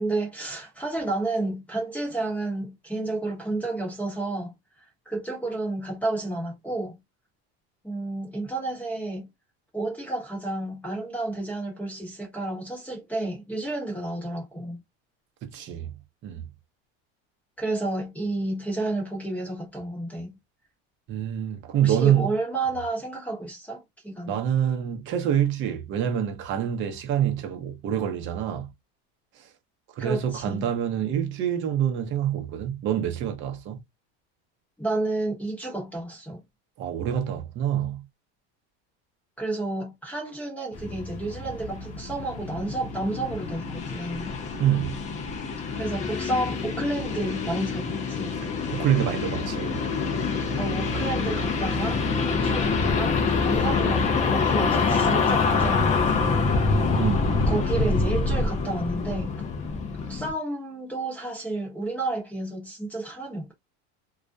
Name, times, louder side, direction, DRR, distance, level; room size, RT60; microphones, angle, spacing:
voice 1, 0.0-4.5 5.1-7.0 7.8-9.3 9.7-14.8 17.6-20.3 21.8-24.4 30.0-30.7 34.8-36.4 39.4-44.3 45.8-48.3 50.6-56.8 57.5-59.3 60.1-63.5, right 2 dB, 5° left, 0.8 m, -31 dB
voice 2, 15.4-15.9 16.2-16.5 21.1-22.3 24.3-28.7 29.3-29.5 29.9-33.8 36.8-38.0 44.6-45.0 48.7-49.8 56.9-57.5, right 10 dB, 40° right, 0.7 m, -26 dB
sound 1, 40.7-60.3, left 4 dB, 25° left, 0.3 m, -26 dB
2.3 x 2.0 x 2.5 m
supercardioid pair, 145°, 32 cm